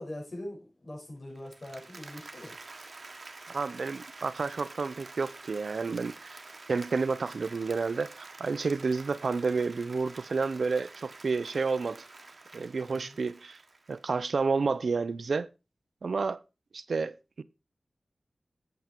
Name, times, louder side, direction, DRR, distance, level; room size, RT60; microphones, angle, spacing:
voice 1, 0.0-2.6 12.9-13.2, left 1 dB, 55° left, 5.3 m, -42 dB
Applause, 1.3-14.4, right 3 dB, 55° right, 1.3 m, -48 dB
voice 2, 3.5-6.4 6.7-12.0 12.5-13.6 13.9-15.5 16.0-16.4 16.7-17.4, right 4 dB, 80° right, 0.5 m, -30 dB
8.2 x 7.8 x 4.4 m
wide cardioid pair, 70°, 0 cm